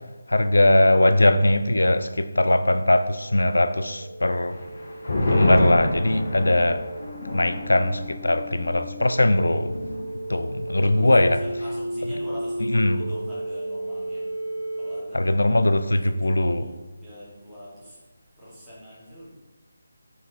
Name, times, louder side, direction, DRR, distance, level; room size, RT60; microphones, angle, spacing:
voice 1, 0.3-4.6 5.3-6.8 7.3-9.8 10.3-11.4 12.7-13.0 15.1-16.7, left 1 dB, 65° left, 0.4 m, -20 dB
sound 1, 1.8-15.0, right 1 dB, 85° right, 0.9 m, -35 dB
sound 2, 4.5-11.4 11.7-11.8 12.2-12.7, left 1 dB, 50° left, 1.2 m, -29 dB
voice 2, 10.8-11.1 11.4-18.0 18.4-19.3, equal, 5° right, 2.1 m, -43 dB
5.7 x 4.7 x 4.2 m
figure-of-eight pair, 155°, 0 cm